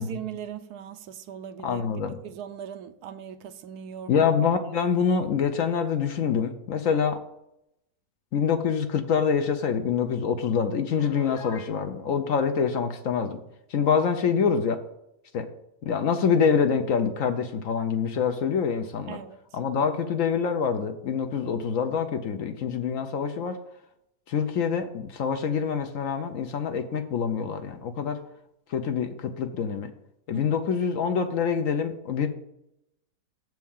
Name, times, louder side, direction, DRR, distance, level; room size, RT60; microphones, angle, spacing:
voice 1, 0.0-4.1 19.1-19.4 30.3-30.5, right 9 dB, 75° right, 1.1 m, -39 dB
voice 2, 1.6-2.2 4.1-7.2 8.3-13.4 13.7-14.8 15.3-15.5 15.8-19.2 19.5-23.6 24.3-28.2 28.7-29.9 30.3-32.3, left 6 dB, 65° left, 1.0 m, -25 dB
Piano, 10.9-11.8, left 4 dB, 80° left, 1.7 m, -42 dB
7.4 x 4.7 x 7.0 m
omnidirectional pair, 1.7 m